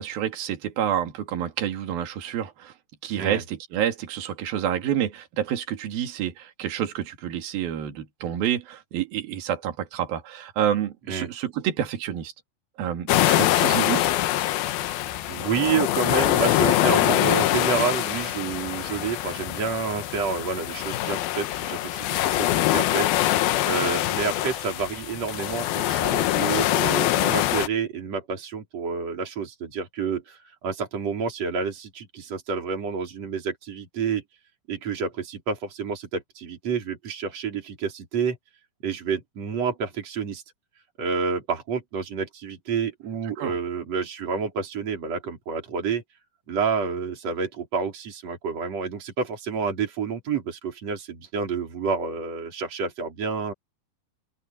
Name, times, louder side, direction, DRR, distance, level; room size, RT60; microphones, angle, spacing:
voice 1, 0.0-2.7 3.0-12.3 12.8-14.0 43.4-43.6, right 10 dB, 60° right, 4.0 m, -28 dB
sound 1, 13.1-27.7, left 14 dB, 75° left, 2.6 m, -24 dB
voice 2, 15.3-23.2 23.6-34.2 34.7-38.4 38.8-40.4 41.0-46.0 46.5-53.5, right 5 dB, 40° right, 5.5 m, -29 dB
open air
omnidirectional pair, 4.8 m